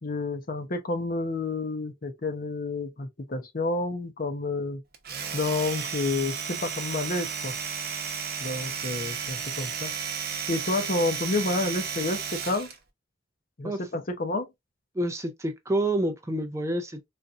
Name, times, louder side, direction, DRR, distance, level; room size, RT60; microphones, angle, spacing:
voice 1, 0.0-4.8 5.3-7.6 8.4-9.9 10.5-12.7 13.6-14.5, left 2 dB, 45° left, 0.7 m, -29 dB
Domestic sounds home sounds, 4.9-12.8, right 6 dB, 50° right, 0.8 m, -33 dB
voice 2, 14.9-17.1, right 1 dB, 15° right, 0.4 m, -28 dB
4.1 x 2.4 x 2.4 m
head